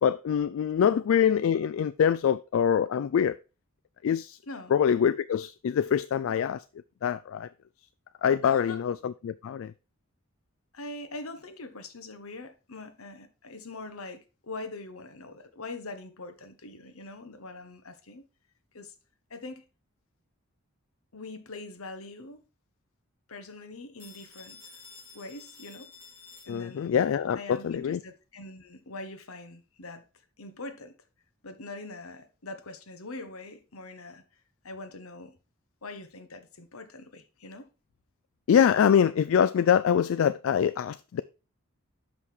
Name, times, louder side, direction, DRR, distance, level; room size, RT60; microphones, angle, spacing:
voice 1, 0.0-3.4 4.0-4.4 4.7-6.6 7.0-7.5 8.2-9.7 26.5-28.0 38.5-41.2, left 8 dB, 70° left, 0.3 m, -24 dB
voice 2, 8.4-8.8 10.7-18.2 18.7-18.9 19.3-19.6 21.1-22.4 23.3-24.8 25.1-25.9 26.4-26.9 27.3-30.0 30.4-30.9 31.4-34.2 34.6-35.4 35.8-37.7, left 2 dB, 90° left, 1.2 m, -43 dB
Telephone, 24.0-27.0, left 5 dB, 10° left, 3.4 m, -51 dB
6.4 x 5.6 x 4.5 m
head